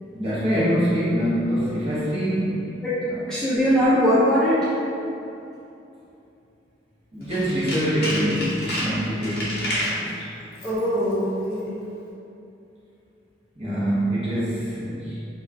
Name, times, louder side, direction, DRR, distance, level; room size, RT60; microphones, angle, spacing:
voice 1, 0.0-2.6 3.1-3.2 7.1-9.6 9.9-10.1 13.6-15.2, equal, 30° right, -11 dB, 0.9 m, -24 dB
voice 2, 3.3-4.6 10.6-11.7, equal, 5° left, -13 dB, 0.4 m, -21 dB
Tools, 7.2-10.0 10.5-10.8 11.1-11.2, equal, 55° left, 0.7 m, -30 dB
2.4 x 2.3 x 3.2 m, 2.7 s
head